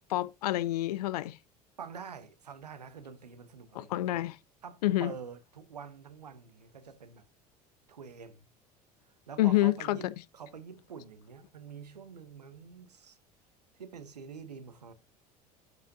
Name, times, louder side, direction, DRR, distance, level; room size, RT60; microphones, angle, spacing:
voice 1, 0.1-1.4 3.7-4.3 4.8-5.1 9.4-10.1, left 15 dB, 75° left, 0.5 m, -28 dB
voice 2, 1.8-4.3 4.6-7.2 7.9-8.5 9.3-13.2 13.8-14.9, right 6 dB, 90° right, 1.0 m, -46 dB
12.0 x 5.7 x 2.7 m
hypercardioid pair, 70°, 20 cm